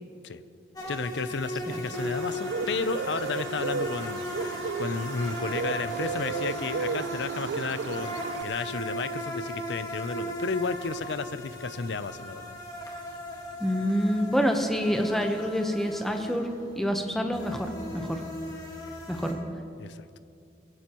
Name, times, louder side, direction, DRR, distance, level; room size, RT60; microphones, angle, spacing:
sound 1, 0.8-19.3, equal, 20° left, 1.7 m, -37 dB
voice 1, 0.9-8.1 8.4-12.6 18.0-18.1 19.8-20.1, left 4 dB, 80° left, 13 dB, 0.6 m, -33 dB
Bird, 1.9-8.4, right 5 dB, 85° right, 0.3 m, -34 dB
voice 2, 13.6-18.2 19.1-19.4, equal, ahead, 4 dB, 0.9 m, -27 dB
20.0 x 16.5 x 3.0 m, 2.5 s
head